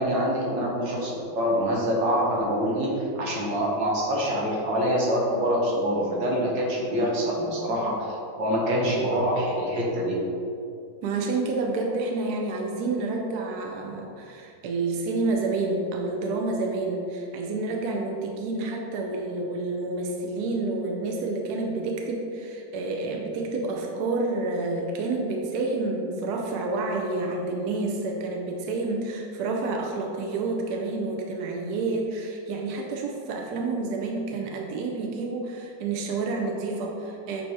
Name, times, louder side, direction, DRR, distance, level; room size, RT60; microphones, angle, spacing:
voice 1, 0.0-8.0 8.4-10.2, equal, 85° right, -3 dB, 1.8 m, -25 dB
voice 2, 11.0-37.4, right 3 dB, 70° right, 1 dB, 1.1 m, -29 dB
7.6 x 2.8 x 4.7 m, 2.5 s
omnidirectional pair, 1.9 m